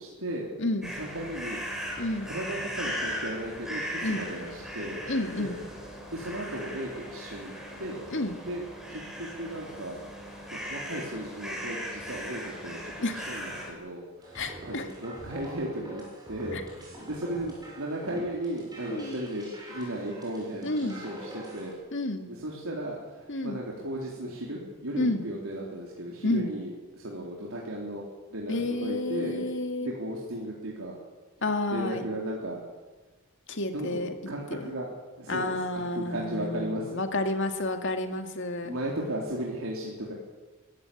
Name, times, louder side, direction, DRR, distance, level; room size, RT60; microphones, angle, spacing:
voice 1, 0.0-0.5 0.9-1.6 2.2-5.0 5.4-5.5 6.1-8.1 8.4-10.1 10.7-16.0 16.3-21.8 22.3-28.0 28.3-29.6 29.8-31.0 31.7-32.6 33.7-34.9 35.2-37.0 38.6-40.1, right 1 dB, 80° right, -3 dB, 3.8 m, -35 dB
voice 2, 0.6-0.9 2.0-2.3 4.0-4.2 5.1-5.6 8.1-8.3 13.0-13.4 14.3-14.9 16.5-16.6 18.9-19.1 20.6-21.0 21.9-22.2 23.3-23.6 25.0-25.2 26.2-26.5 28.5-29.9 31.4-32.1 33.5-34.1 34.5-34.7 35.3-38.7, left 2 dB, 60° left, 6 dB, 2.3 m, -30 dB
sound 1, 0.8-13.7, equal, ahead, 5.5 m, -38 dB
sound 2, 14.2-21.7, right 1 dB, 20° right, 7.6 m, -45 dB
23.5 x 14.0 x 8.7 m, 1.3 s
head